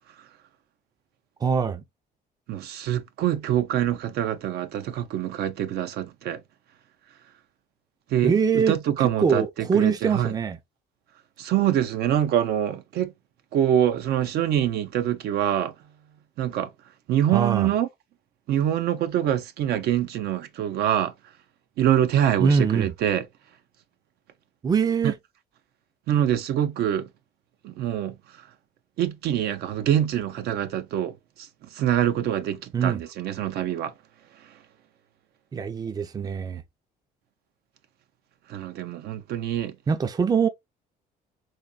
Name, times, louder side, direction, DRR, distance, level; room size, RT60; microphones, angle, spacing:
voice 1, 1.4-1.8 8.2-8.7 9.2-10.6 17.3-17.7 22.4-22.9 24.6-25.1 32.7-33.0 35.5-36.6 39.9-40.5, right 6 dB, 20° right, 0.5 m, -23 dB
voice 2, 2.5-6.4 8.1-10.3 11.4-13.1 13.5-15.7 16.4-16.7 17.1-17.9 18.5-21.1 21.8-23.3 25.0-25.1 26.1-27.1 27.6-28.2 29.0-33.9 38.5-39.8, right 11 dB, 70° right, 0.6 m, -25 dB
4.1 x 3.0 x 2.3 m
cardioid pair, 110°, 17 cm